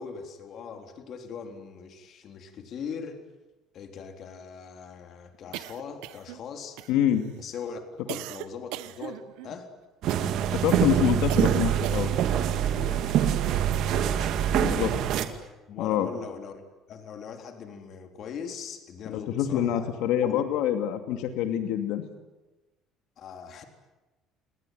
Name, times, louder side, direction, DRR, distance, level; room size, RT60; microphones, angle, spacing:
voice 1, 0.0-3.2 3.7-6.8 7.4-9.7 12.6-14.9 15.7-16.6 16.9-19.9 20.2-20.4 23.2-23.6, left 6 dB, 50° left, 5 dB, 3.7 m, -41 dB
sound 1, 5.5-6.4 6.8-7.3 8.1-9.6 10.1-10.5 11.3-12.3, right 16 dB, 90° right, 1.1 m, -39 dB
voice 2, 6.9-7.3 10.5-12.1 14.5-14.9 15.8-16.1 19.1-22.1, left 10 dB, 80° left, 7 dB, 2.5 m, -26 dB
sound 2, 10.0-15.3, right 10 dB, 65° right, 2.4 m, -25 dB
29.5 x 19.5 x 9.5 m, 1.1 s
cardioid pair, 130°, 0 cm